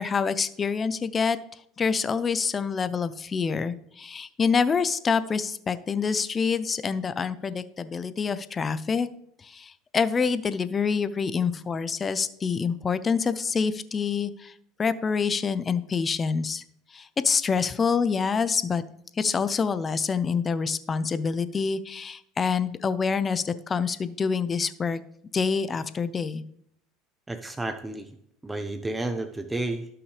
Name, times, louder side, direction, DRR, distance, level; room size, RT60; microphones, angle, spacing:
voice 1, 0.0-1.4 1.8-9.1 9.4-14.5 14.8-16.6 16.9-18.8 19.2-25.0 25.3-26.4, left 5 dB, 25° left, 14 dB, 0.6 m, -26 dB
voice 2, 27.3-28.1 28.4-29.9, right 2 dB, 10° right, 7 dB, 0.8 m, -31 dB
17.0 x 6.0 x 3.3 m, 0.70 s
supercardioid pair, 115°, 0 cm